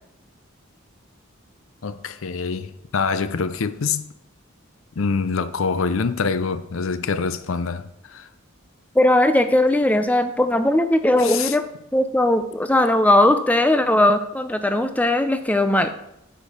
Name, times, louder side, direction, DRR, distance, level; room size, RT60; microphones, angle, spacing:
voice 1, 1.8-4.1 5.0-8.3 11.2-11.6, left 5 dB, 75° left, 0.5 m, -25 dB
voice 2, 9.0-11.6 11.9-15.9, left 1 dB, 5° left, 0.5 m, -18 dB
8.1 x 4.5 x 5.5 m
head